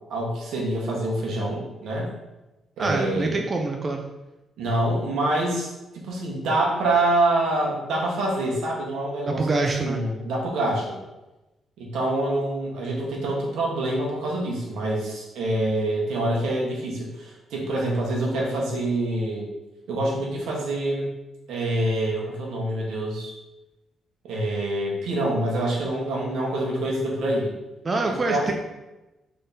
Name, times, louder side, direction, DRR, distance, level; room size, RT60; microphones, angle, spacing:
voice 1, 0.1-2.1 2.8-3.4 4.6-5.7 6.0-9.5 9.8-11.0 11.8-19.5 19.9-21.1 21.5-23.3 24.2-27.5 28.0-28.5, right 1 dB, 80° right, -2 dB, 1.3 m, -26 dB
voice 2, 2.8-4.0 9.3-10.0 27.8-28.5, right 3 dB, 30° right, 3 dB, 0.4 m, -25 dB
3.6 x 3.5 x 4.1 m, 1.0 s
cardioid pair, 110°, 0 cm